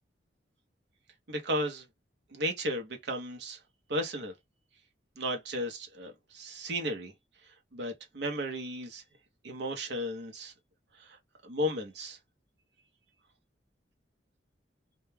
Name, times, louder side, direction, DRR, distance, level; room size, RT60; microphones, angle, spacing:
voice 1, 1.3-1.8 2.3-3.6 3.9-4.3 5.2-7.1 7.7-9.0 9.4-10.5 11.0-11.2 11.4-12.2, equal, 65° right, 0.7 m, -34 dB
2.2 x 2.1 x 3.1 m
head